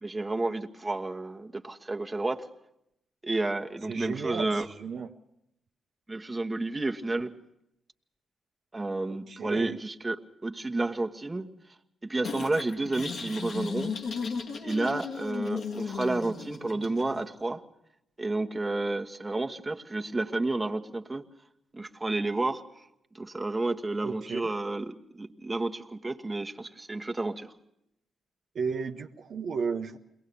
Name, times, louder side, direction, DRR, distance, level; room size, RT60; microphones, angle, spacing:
voice 1, 0.0-2.5 3.2-4.7 6.1-7.3 8.7-11.5 12.0-14.0 14.6-17.6 18.2-21.2 21.7-22.6 23.1-27.5, right 2 dB, 25° right, 1.3 m, -31 dB
voice 2, 3.9-5.1 9.1-9.8 24.0-24.5 28.5-30.0, right 5 dB, 65° right, 0.9 m, -34 dB
sound 1, 12.2-17.2, left 5 dB, 65° left, 1.8 m, -35 dB
22.5 x 18.5 x 6.9 m
supercardioid pair, 50°, 0 cm